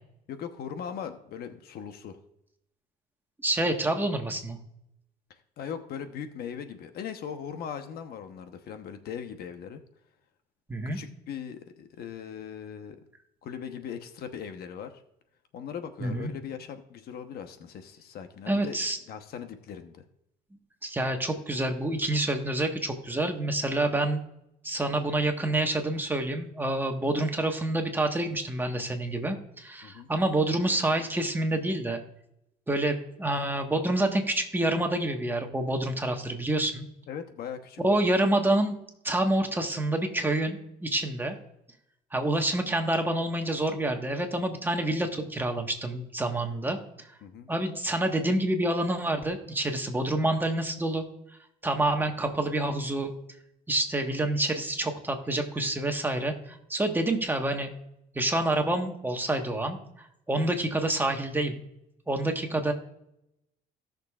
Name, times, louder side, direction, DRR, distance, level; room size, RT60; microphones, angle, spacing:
voice 1, 0.3-2.2 5.3-9.8 10.8-13.0 13.4-15.0 15.5-18.8 19.1-20.0 29.8-30.1 37.1-38.0 47.2-47.5, left 8 dB, 65° left, 8 dB, 1.0 m, -39 dB
voice 2, 3.4-4.6 10.7-11.0 16.0-16.3 18.5-19.0 20.8-24.2 24.6-32.0 32.7-36.9 37.8-38.7 39.0-41.3 42.1-47.1 47.5-51.0 51.6-53.1 53.7-57.7 58.1-61.6 62.1-62.7, right 1 dB, 10° right, 3 dB, 1.4 m, -27 dB
17.5 x 6.5 x 2.4 m, 0.81 s
cardioid pair, 110°, 17 cm